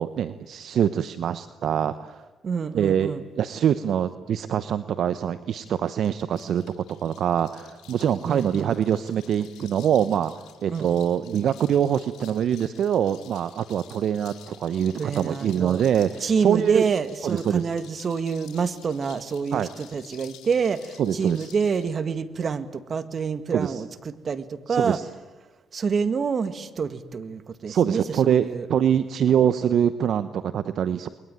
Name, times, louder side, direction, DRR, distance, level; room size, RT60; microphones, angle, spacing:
voice 1, 0.0-2.2 2.7-3.1 3.4-10.3 10.6-16.9 17.2-17.7 19.5-19.7 21.0-21.5 23.5-23.8 24.7-25.0 27.7-31.1, right 9 dB, 65° right, 12 dB, 0.9 m, -24 dB
voice 2, 2.4-3.2 8.3-8.7 10.7-10.9 15.0-15.8 16.2-25.0 25.7-28.7, right 5 dB, 50° right, 11 dB, 2.0 m, -27 dB
sound 1, 5.5-21.9, left 11 dB, 70° left, 4.5 m, -51 dB
29.5 x 22.0 x 9.2 m, 1.1 s
hypercardioid pair, 55°, 0 cm